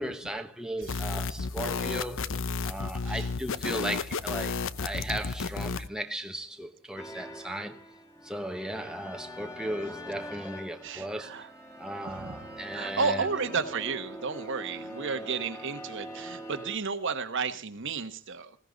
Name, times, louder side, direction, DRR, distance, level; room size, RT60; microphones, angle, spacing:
voice 1, 0.0-7.8 8.2-11.5 11.8-13.3, right 1 dB, 5° right, 1.1 m, -36 dB
sound 1, 0.8-5.9, left 4 dB, 65° left, 0.8 m, -32 dB
sound 2, 7.0-16.8, equal, 15° left, 2.3 m, -43 dB
voice 2, 10.8-11.5 12.0-18.6, right 5 dB, 60° right, 1.3 m, -33 dB
20.0 x 16.5 x 4.0 m
head